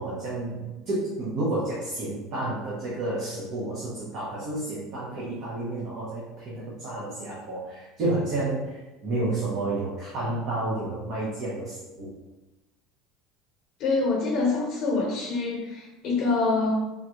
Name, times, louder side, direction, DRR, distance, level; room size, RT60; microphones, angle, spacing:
voice 1, 0.0-12.1, right 2 dB, 45° right, -6 dB, 0.8 m, -30 dB
voice 2, 13.8-16.7, left 3 dB, 50° left, -2 dB, 0.9 m, -25 dB
3.7 x 2.3 x 2.9 m, 1.1 s
cardioid pair, 155°, 0 cm